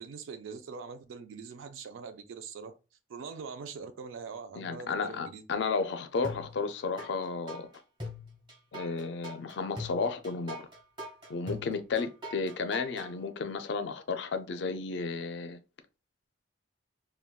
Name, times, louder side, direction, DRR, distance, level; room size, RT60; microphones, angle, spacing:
voice 1, 0.0-2.8 3.1-5.4, right 5 dB, 80° right, 0.4 m, -43 dB
voice 2, 4.5-7.7 8.7-10.7 11.3-15.6, left 4 dB, 60° left, 0.4 m, -33 dB
sound 1, 6.2-7.1 7.5-13.1, left 1 dB, 25° right, 1.0 m, -41 dB
3.5 x 2.2 x 2.2 m
head